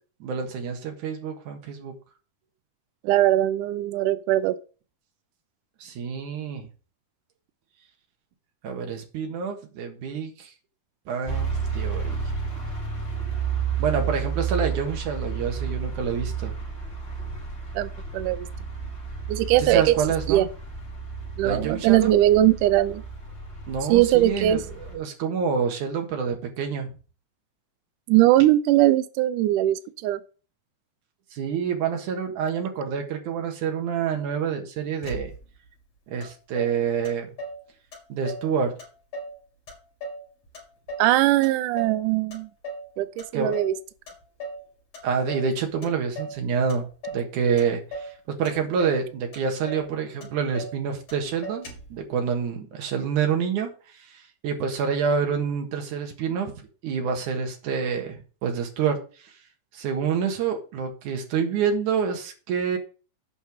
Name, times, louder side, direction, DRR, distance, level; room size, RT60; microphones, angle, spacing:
voice 1, 0.2-1.9 5.8-6.7 8.6-10.5 11.1-12.3 13.8-16.5 19.6-20.5 21.4-22.1 23.7-26.9 31.3-35.3 36.1-37.3 38.1-38.7 43.3-43.6 45.0-59.3 59.7-62.8, right 6 dB, 60° right, 2.8 m, -27 dB
voice 2, 3.0-4.6 17.8-18.5 19.3-20.0 20.3-20.5 21.4-23.0 23.9-24.6 28.1-30.2 41.0-42.5 43.0-43.7, right 14 dB, 85° right, 1.8 m, -20 dB
sound 1, 11.2-25.0, right 6 dB, 20° left, 3.9 m, -32 dB
Motor vehicle (road), 35.0-35.7 36.2-36.3 36.6-37.6 37.9-38.5 38.8-39.4 39.7-41.1 41.4-42.0 42.3-42.9 43.2-43.8 44.1-44.7 44.9-45.5 45.8-46.4 46.7-47.3 47.6-48.2 48.5-49.0 49.3-49.4 49.7-49.9 50.2-50.8 51.1-51.2 51.4-52.0, right 1 dB, 45° left, 4.3 m, -37 dB
8.6 x 5.6 x 6.5 m
omnidirectional pair, 4.4 m